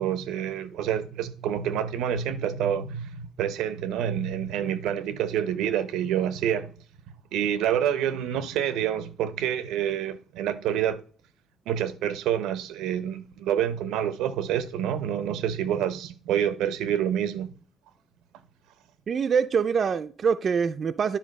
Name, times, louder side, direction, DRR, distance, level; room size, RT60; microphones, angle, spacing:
voice 1, 0.0-6.7 7.3-11.0 11.7-17.5, right 9 dB, 90° right, 0.7 m, -27 dB
voice 2, 19.1-21.2, right 6 dB, 40° right, 0.4 m, -24 dB
10.0 x 3.5 x 5.2 m
cardioid pair, 125°, 0 cm